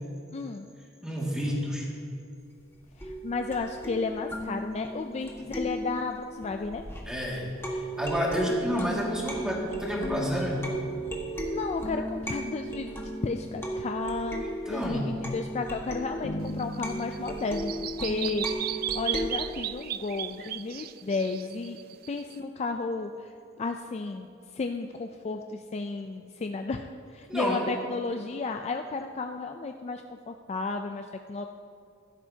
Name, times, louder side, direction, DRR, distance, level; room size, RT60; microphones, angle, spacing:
voice 1, 0.3-0.7 3.0-6.9 11.4-13.0 13.2-21.8 22.1-23.3 23.6-24.3 24.5-31.4, left 3 dB, 30° left, 5 dB, 0.3 m, -33 dB
voice 2, 1.0-1.9 7.1-10.7 14.4-15.2 27.3-27.7, equal, 5° right, -4 dB, 2.0 m, -30 dB
sound 1, 3.0-7.2 7.6-19.3, right 1 dB, 10° left, 1.4 m, -36 dB
sound 2, 16.2-19.3, equal, 55° left, 0.9 m, -39 dB
Bird vocalization bird call bird song, 16.5-22.4, right 12 dB, 45° right, 0.3 m, -35 dB
15.5 x 12.5 x 2.8 m, 2.6 s
head